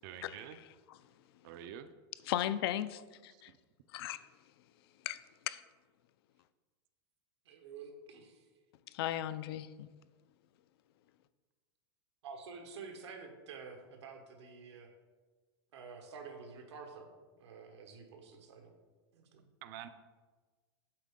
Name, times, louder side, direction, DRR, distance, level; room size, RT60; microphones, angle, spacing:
voice 1, 0.0-0.6 1.4-1.9 3.3-3.6 19.6-19.9, right 10 dB, 50° right, 0.4 m, -47 dB
voice 2, 2.3-3.5 3.9-4.2 5.1-5.2 5.5-5.6 8.9-9.9, left 12 dB, 65° left, 0.4 m, -36 dB
voice 3, 7.4-8.5 12.2-14.9 15.7-17.1 17.3-18.7 19.1-19.4, right 5 dB, 90° right, 1.2 m, -49 dB
7.6 x 4.6 x 3.6 m
supercardioid pair, 150°, 14 cm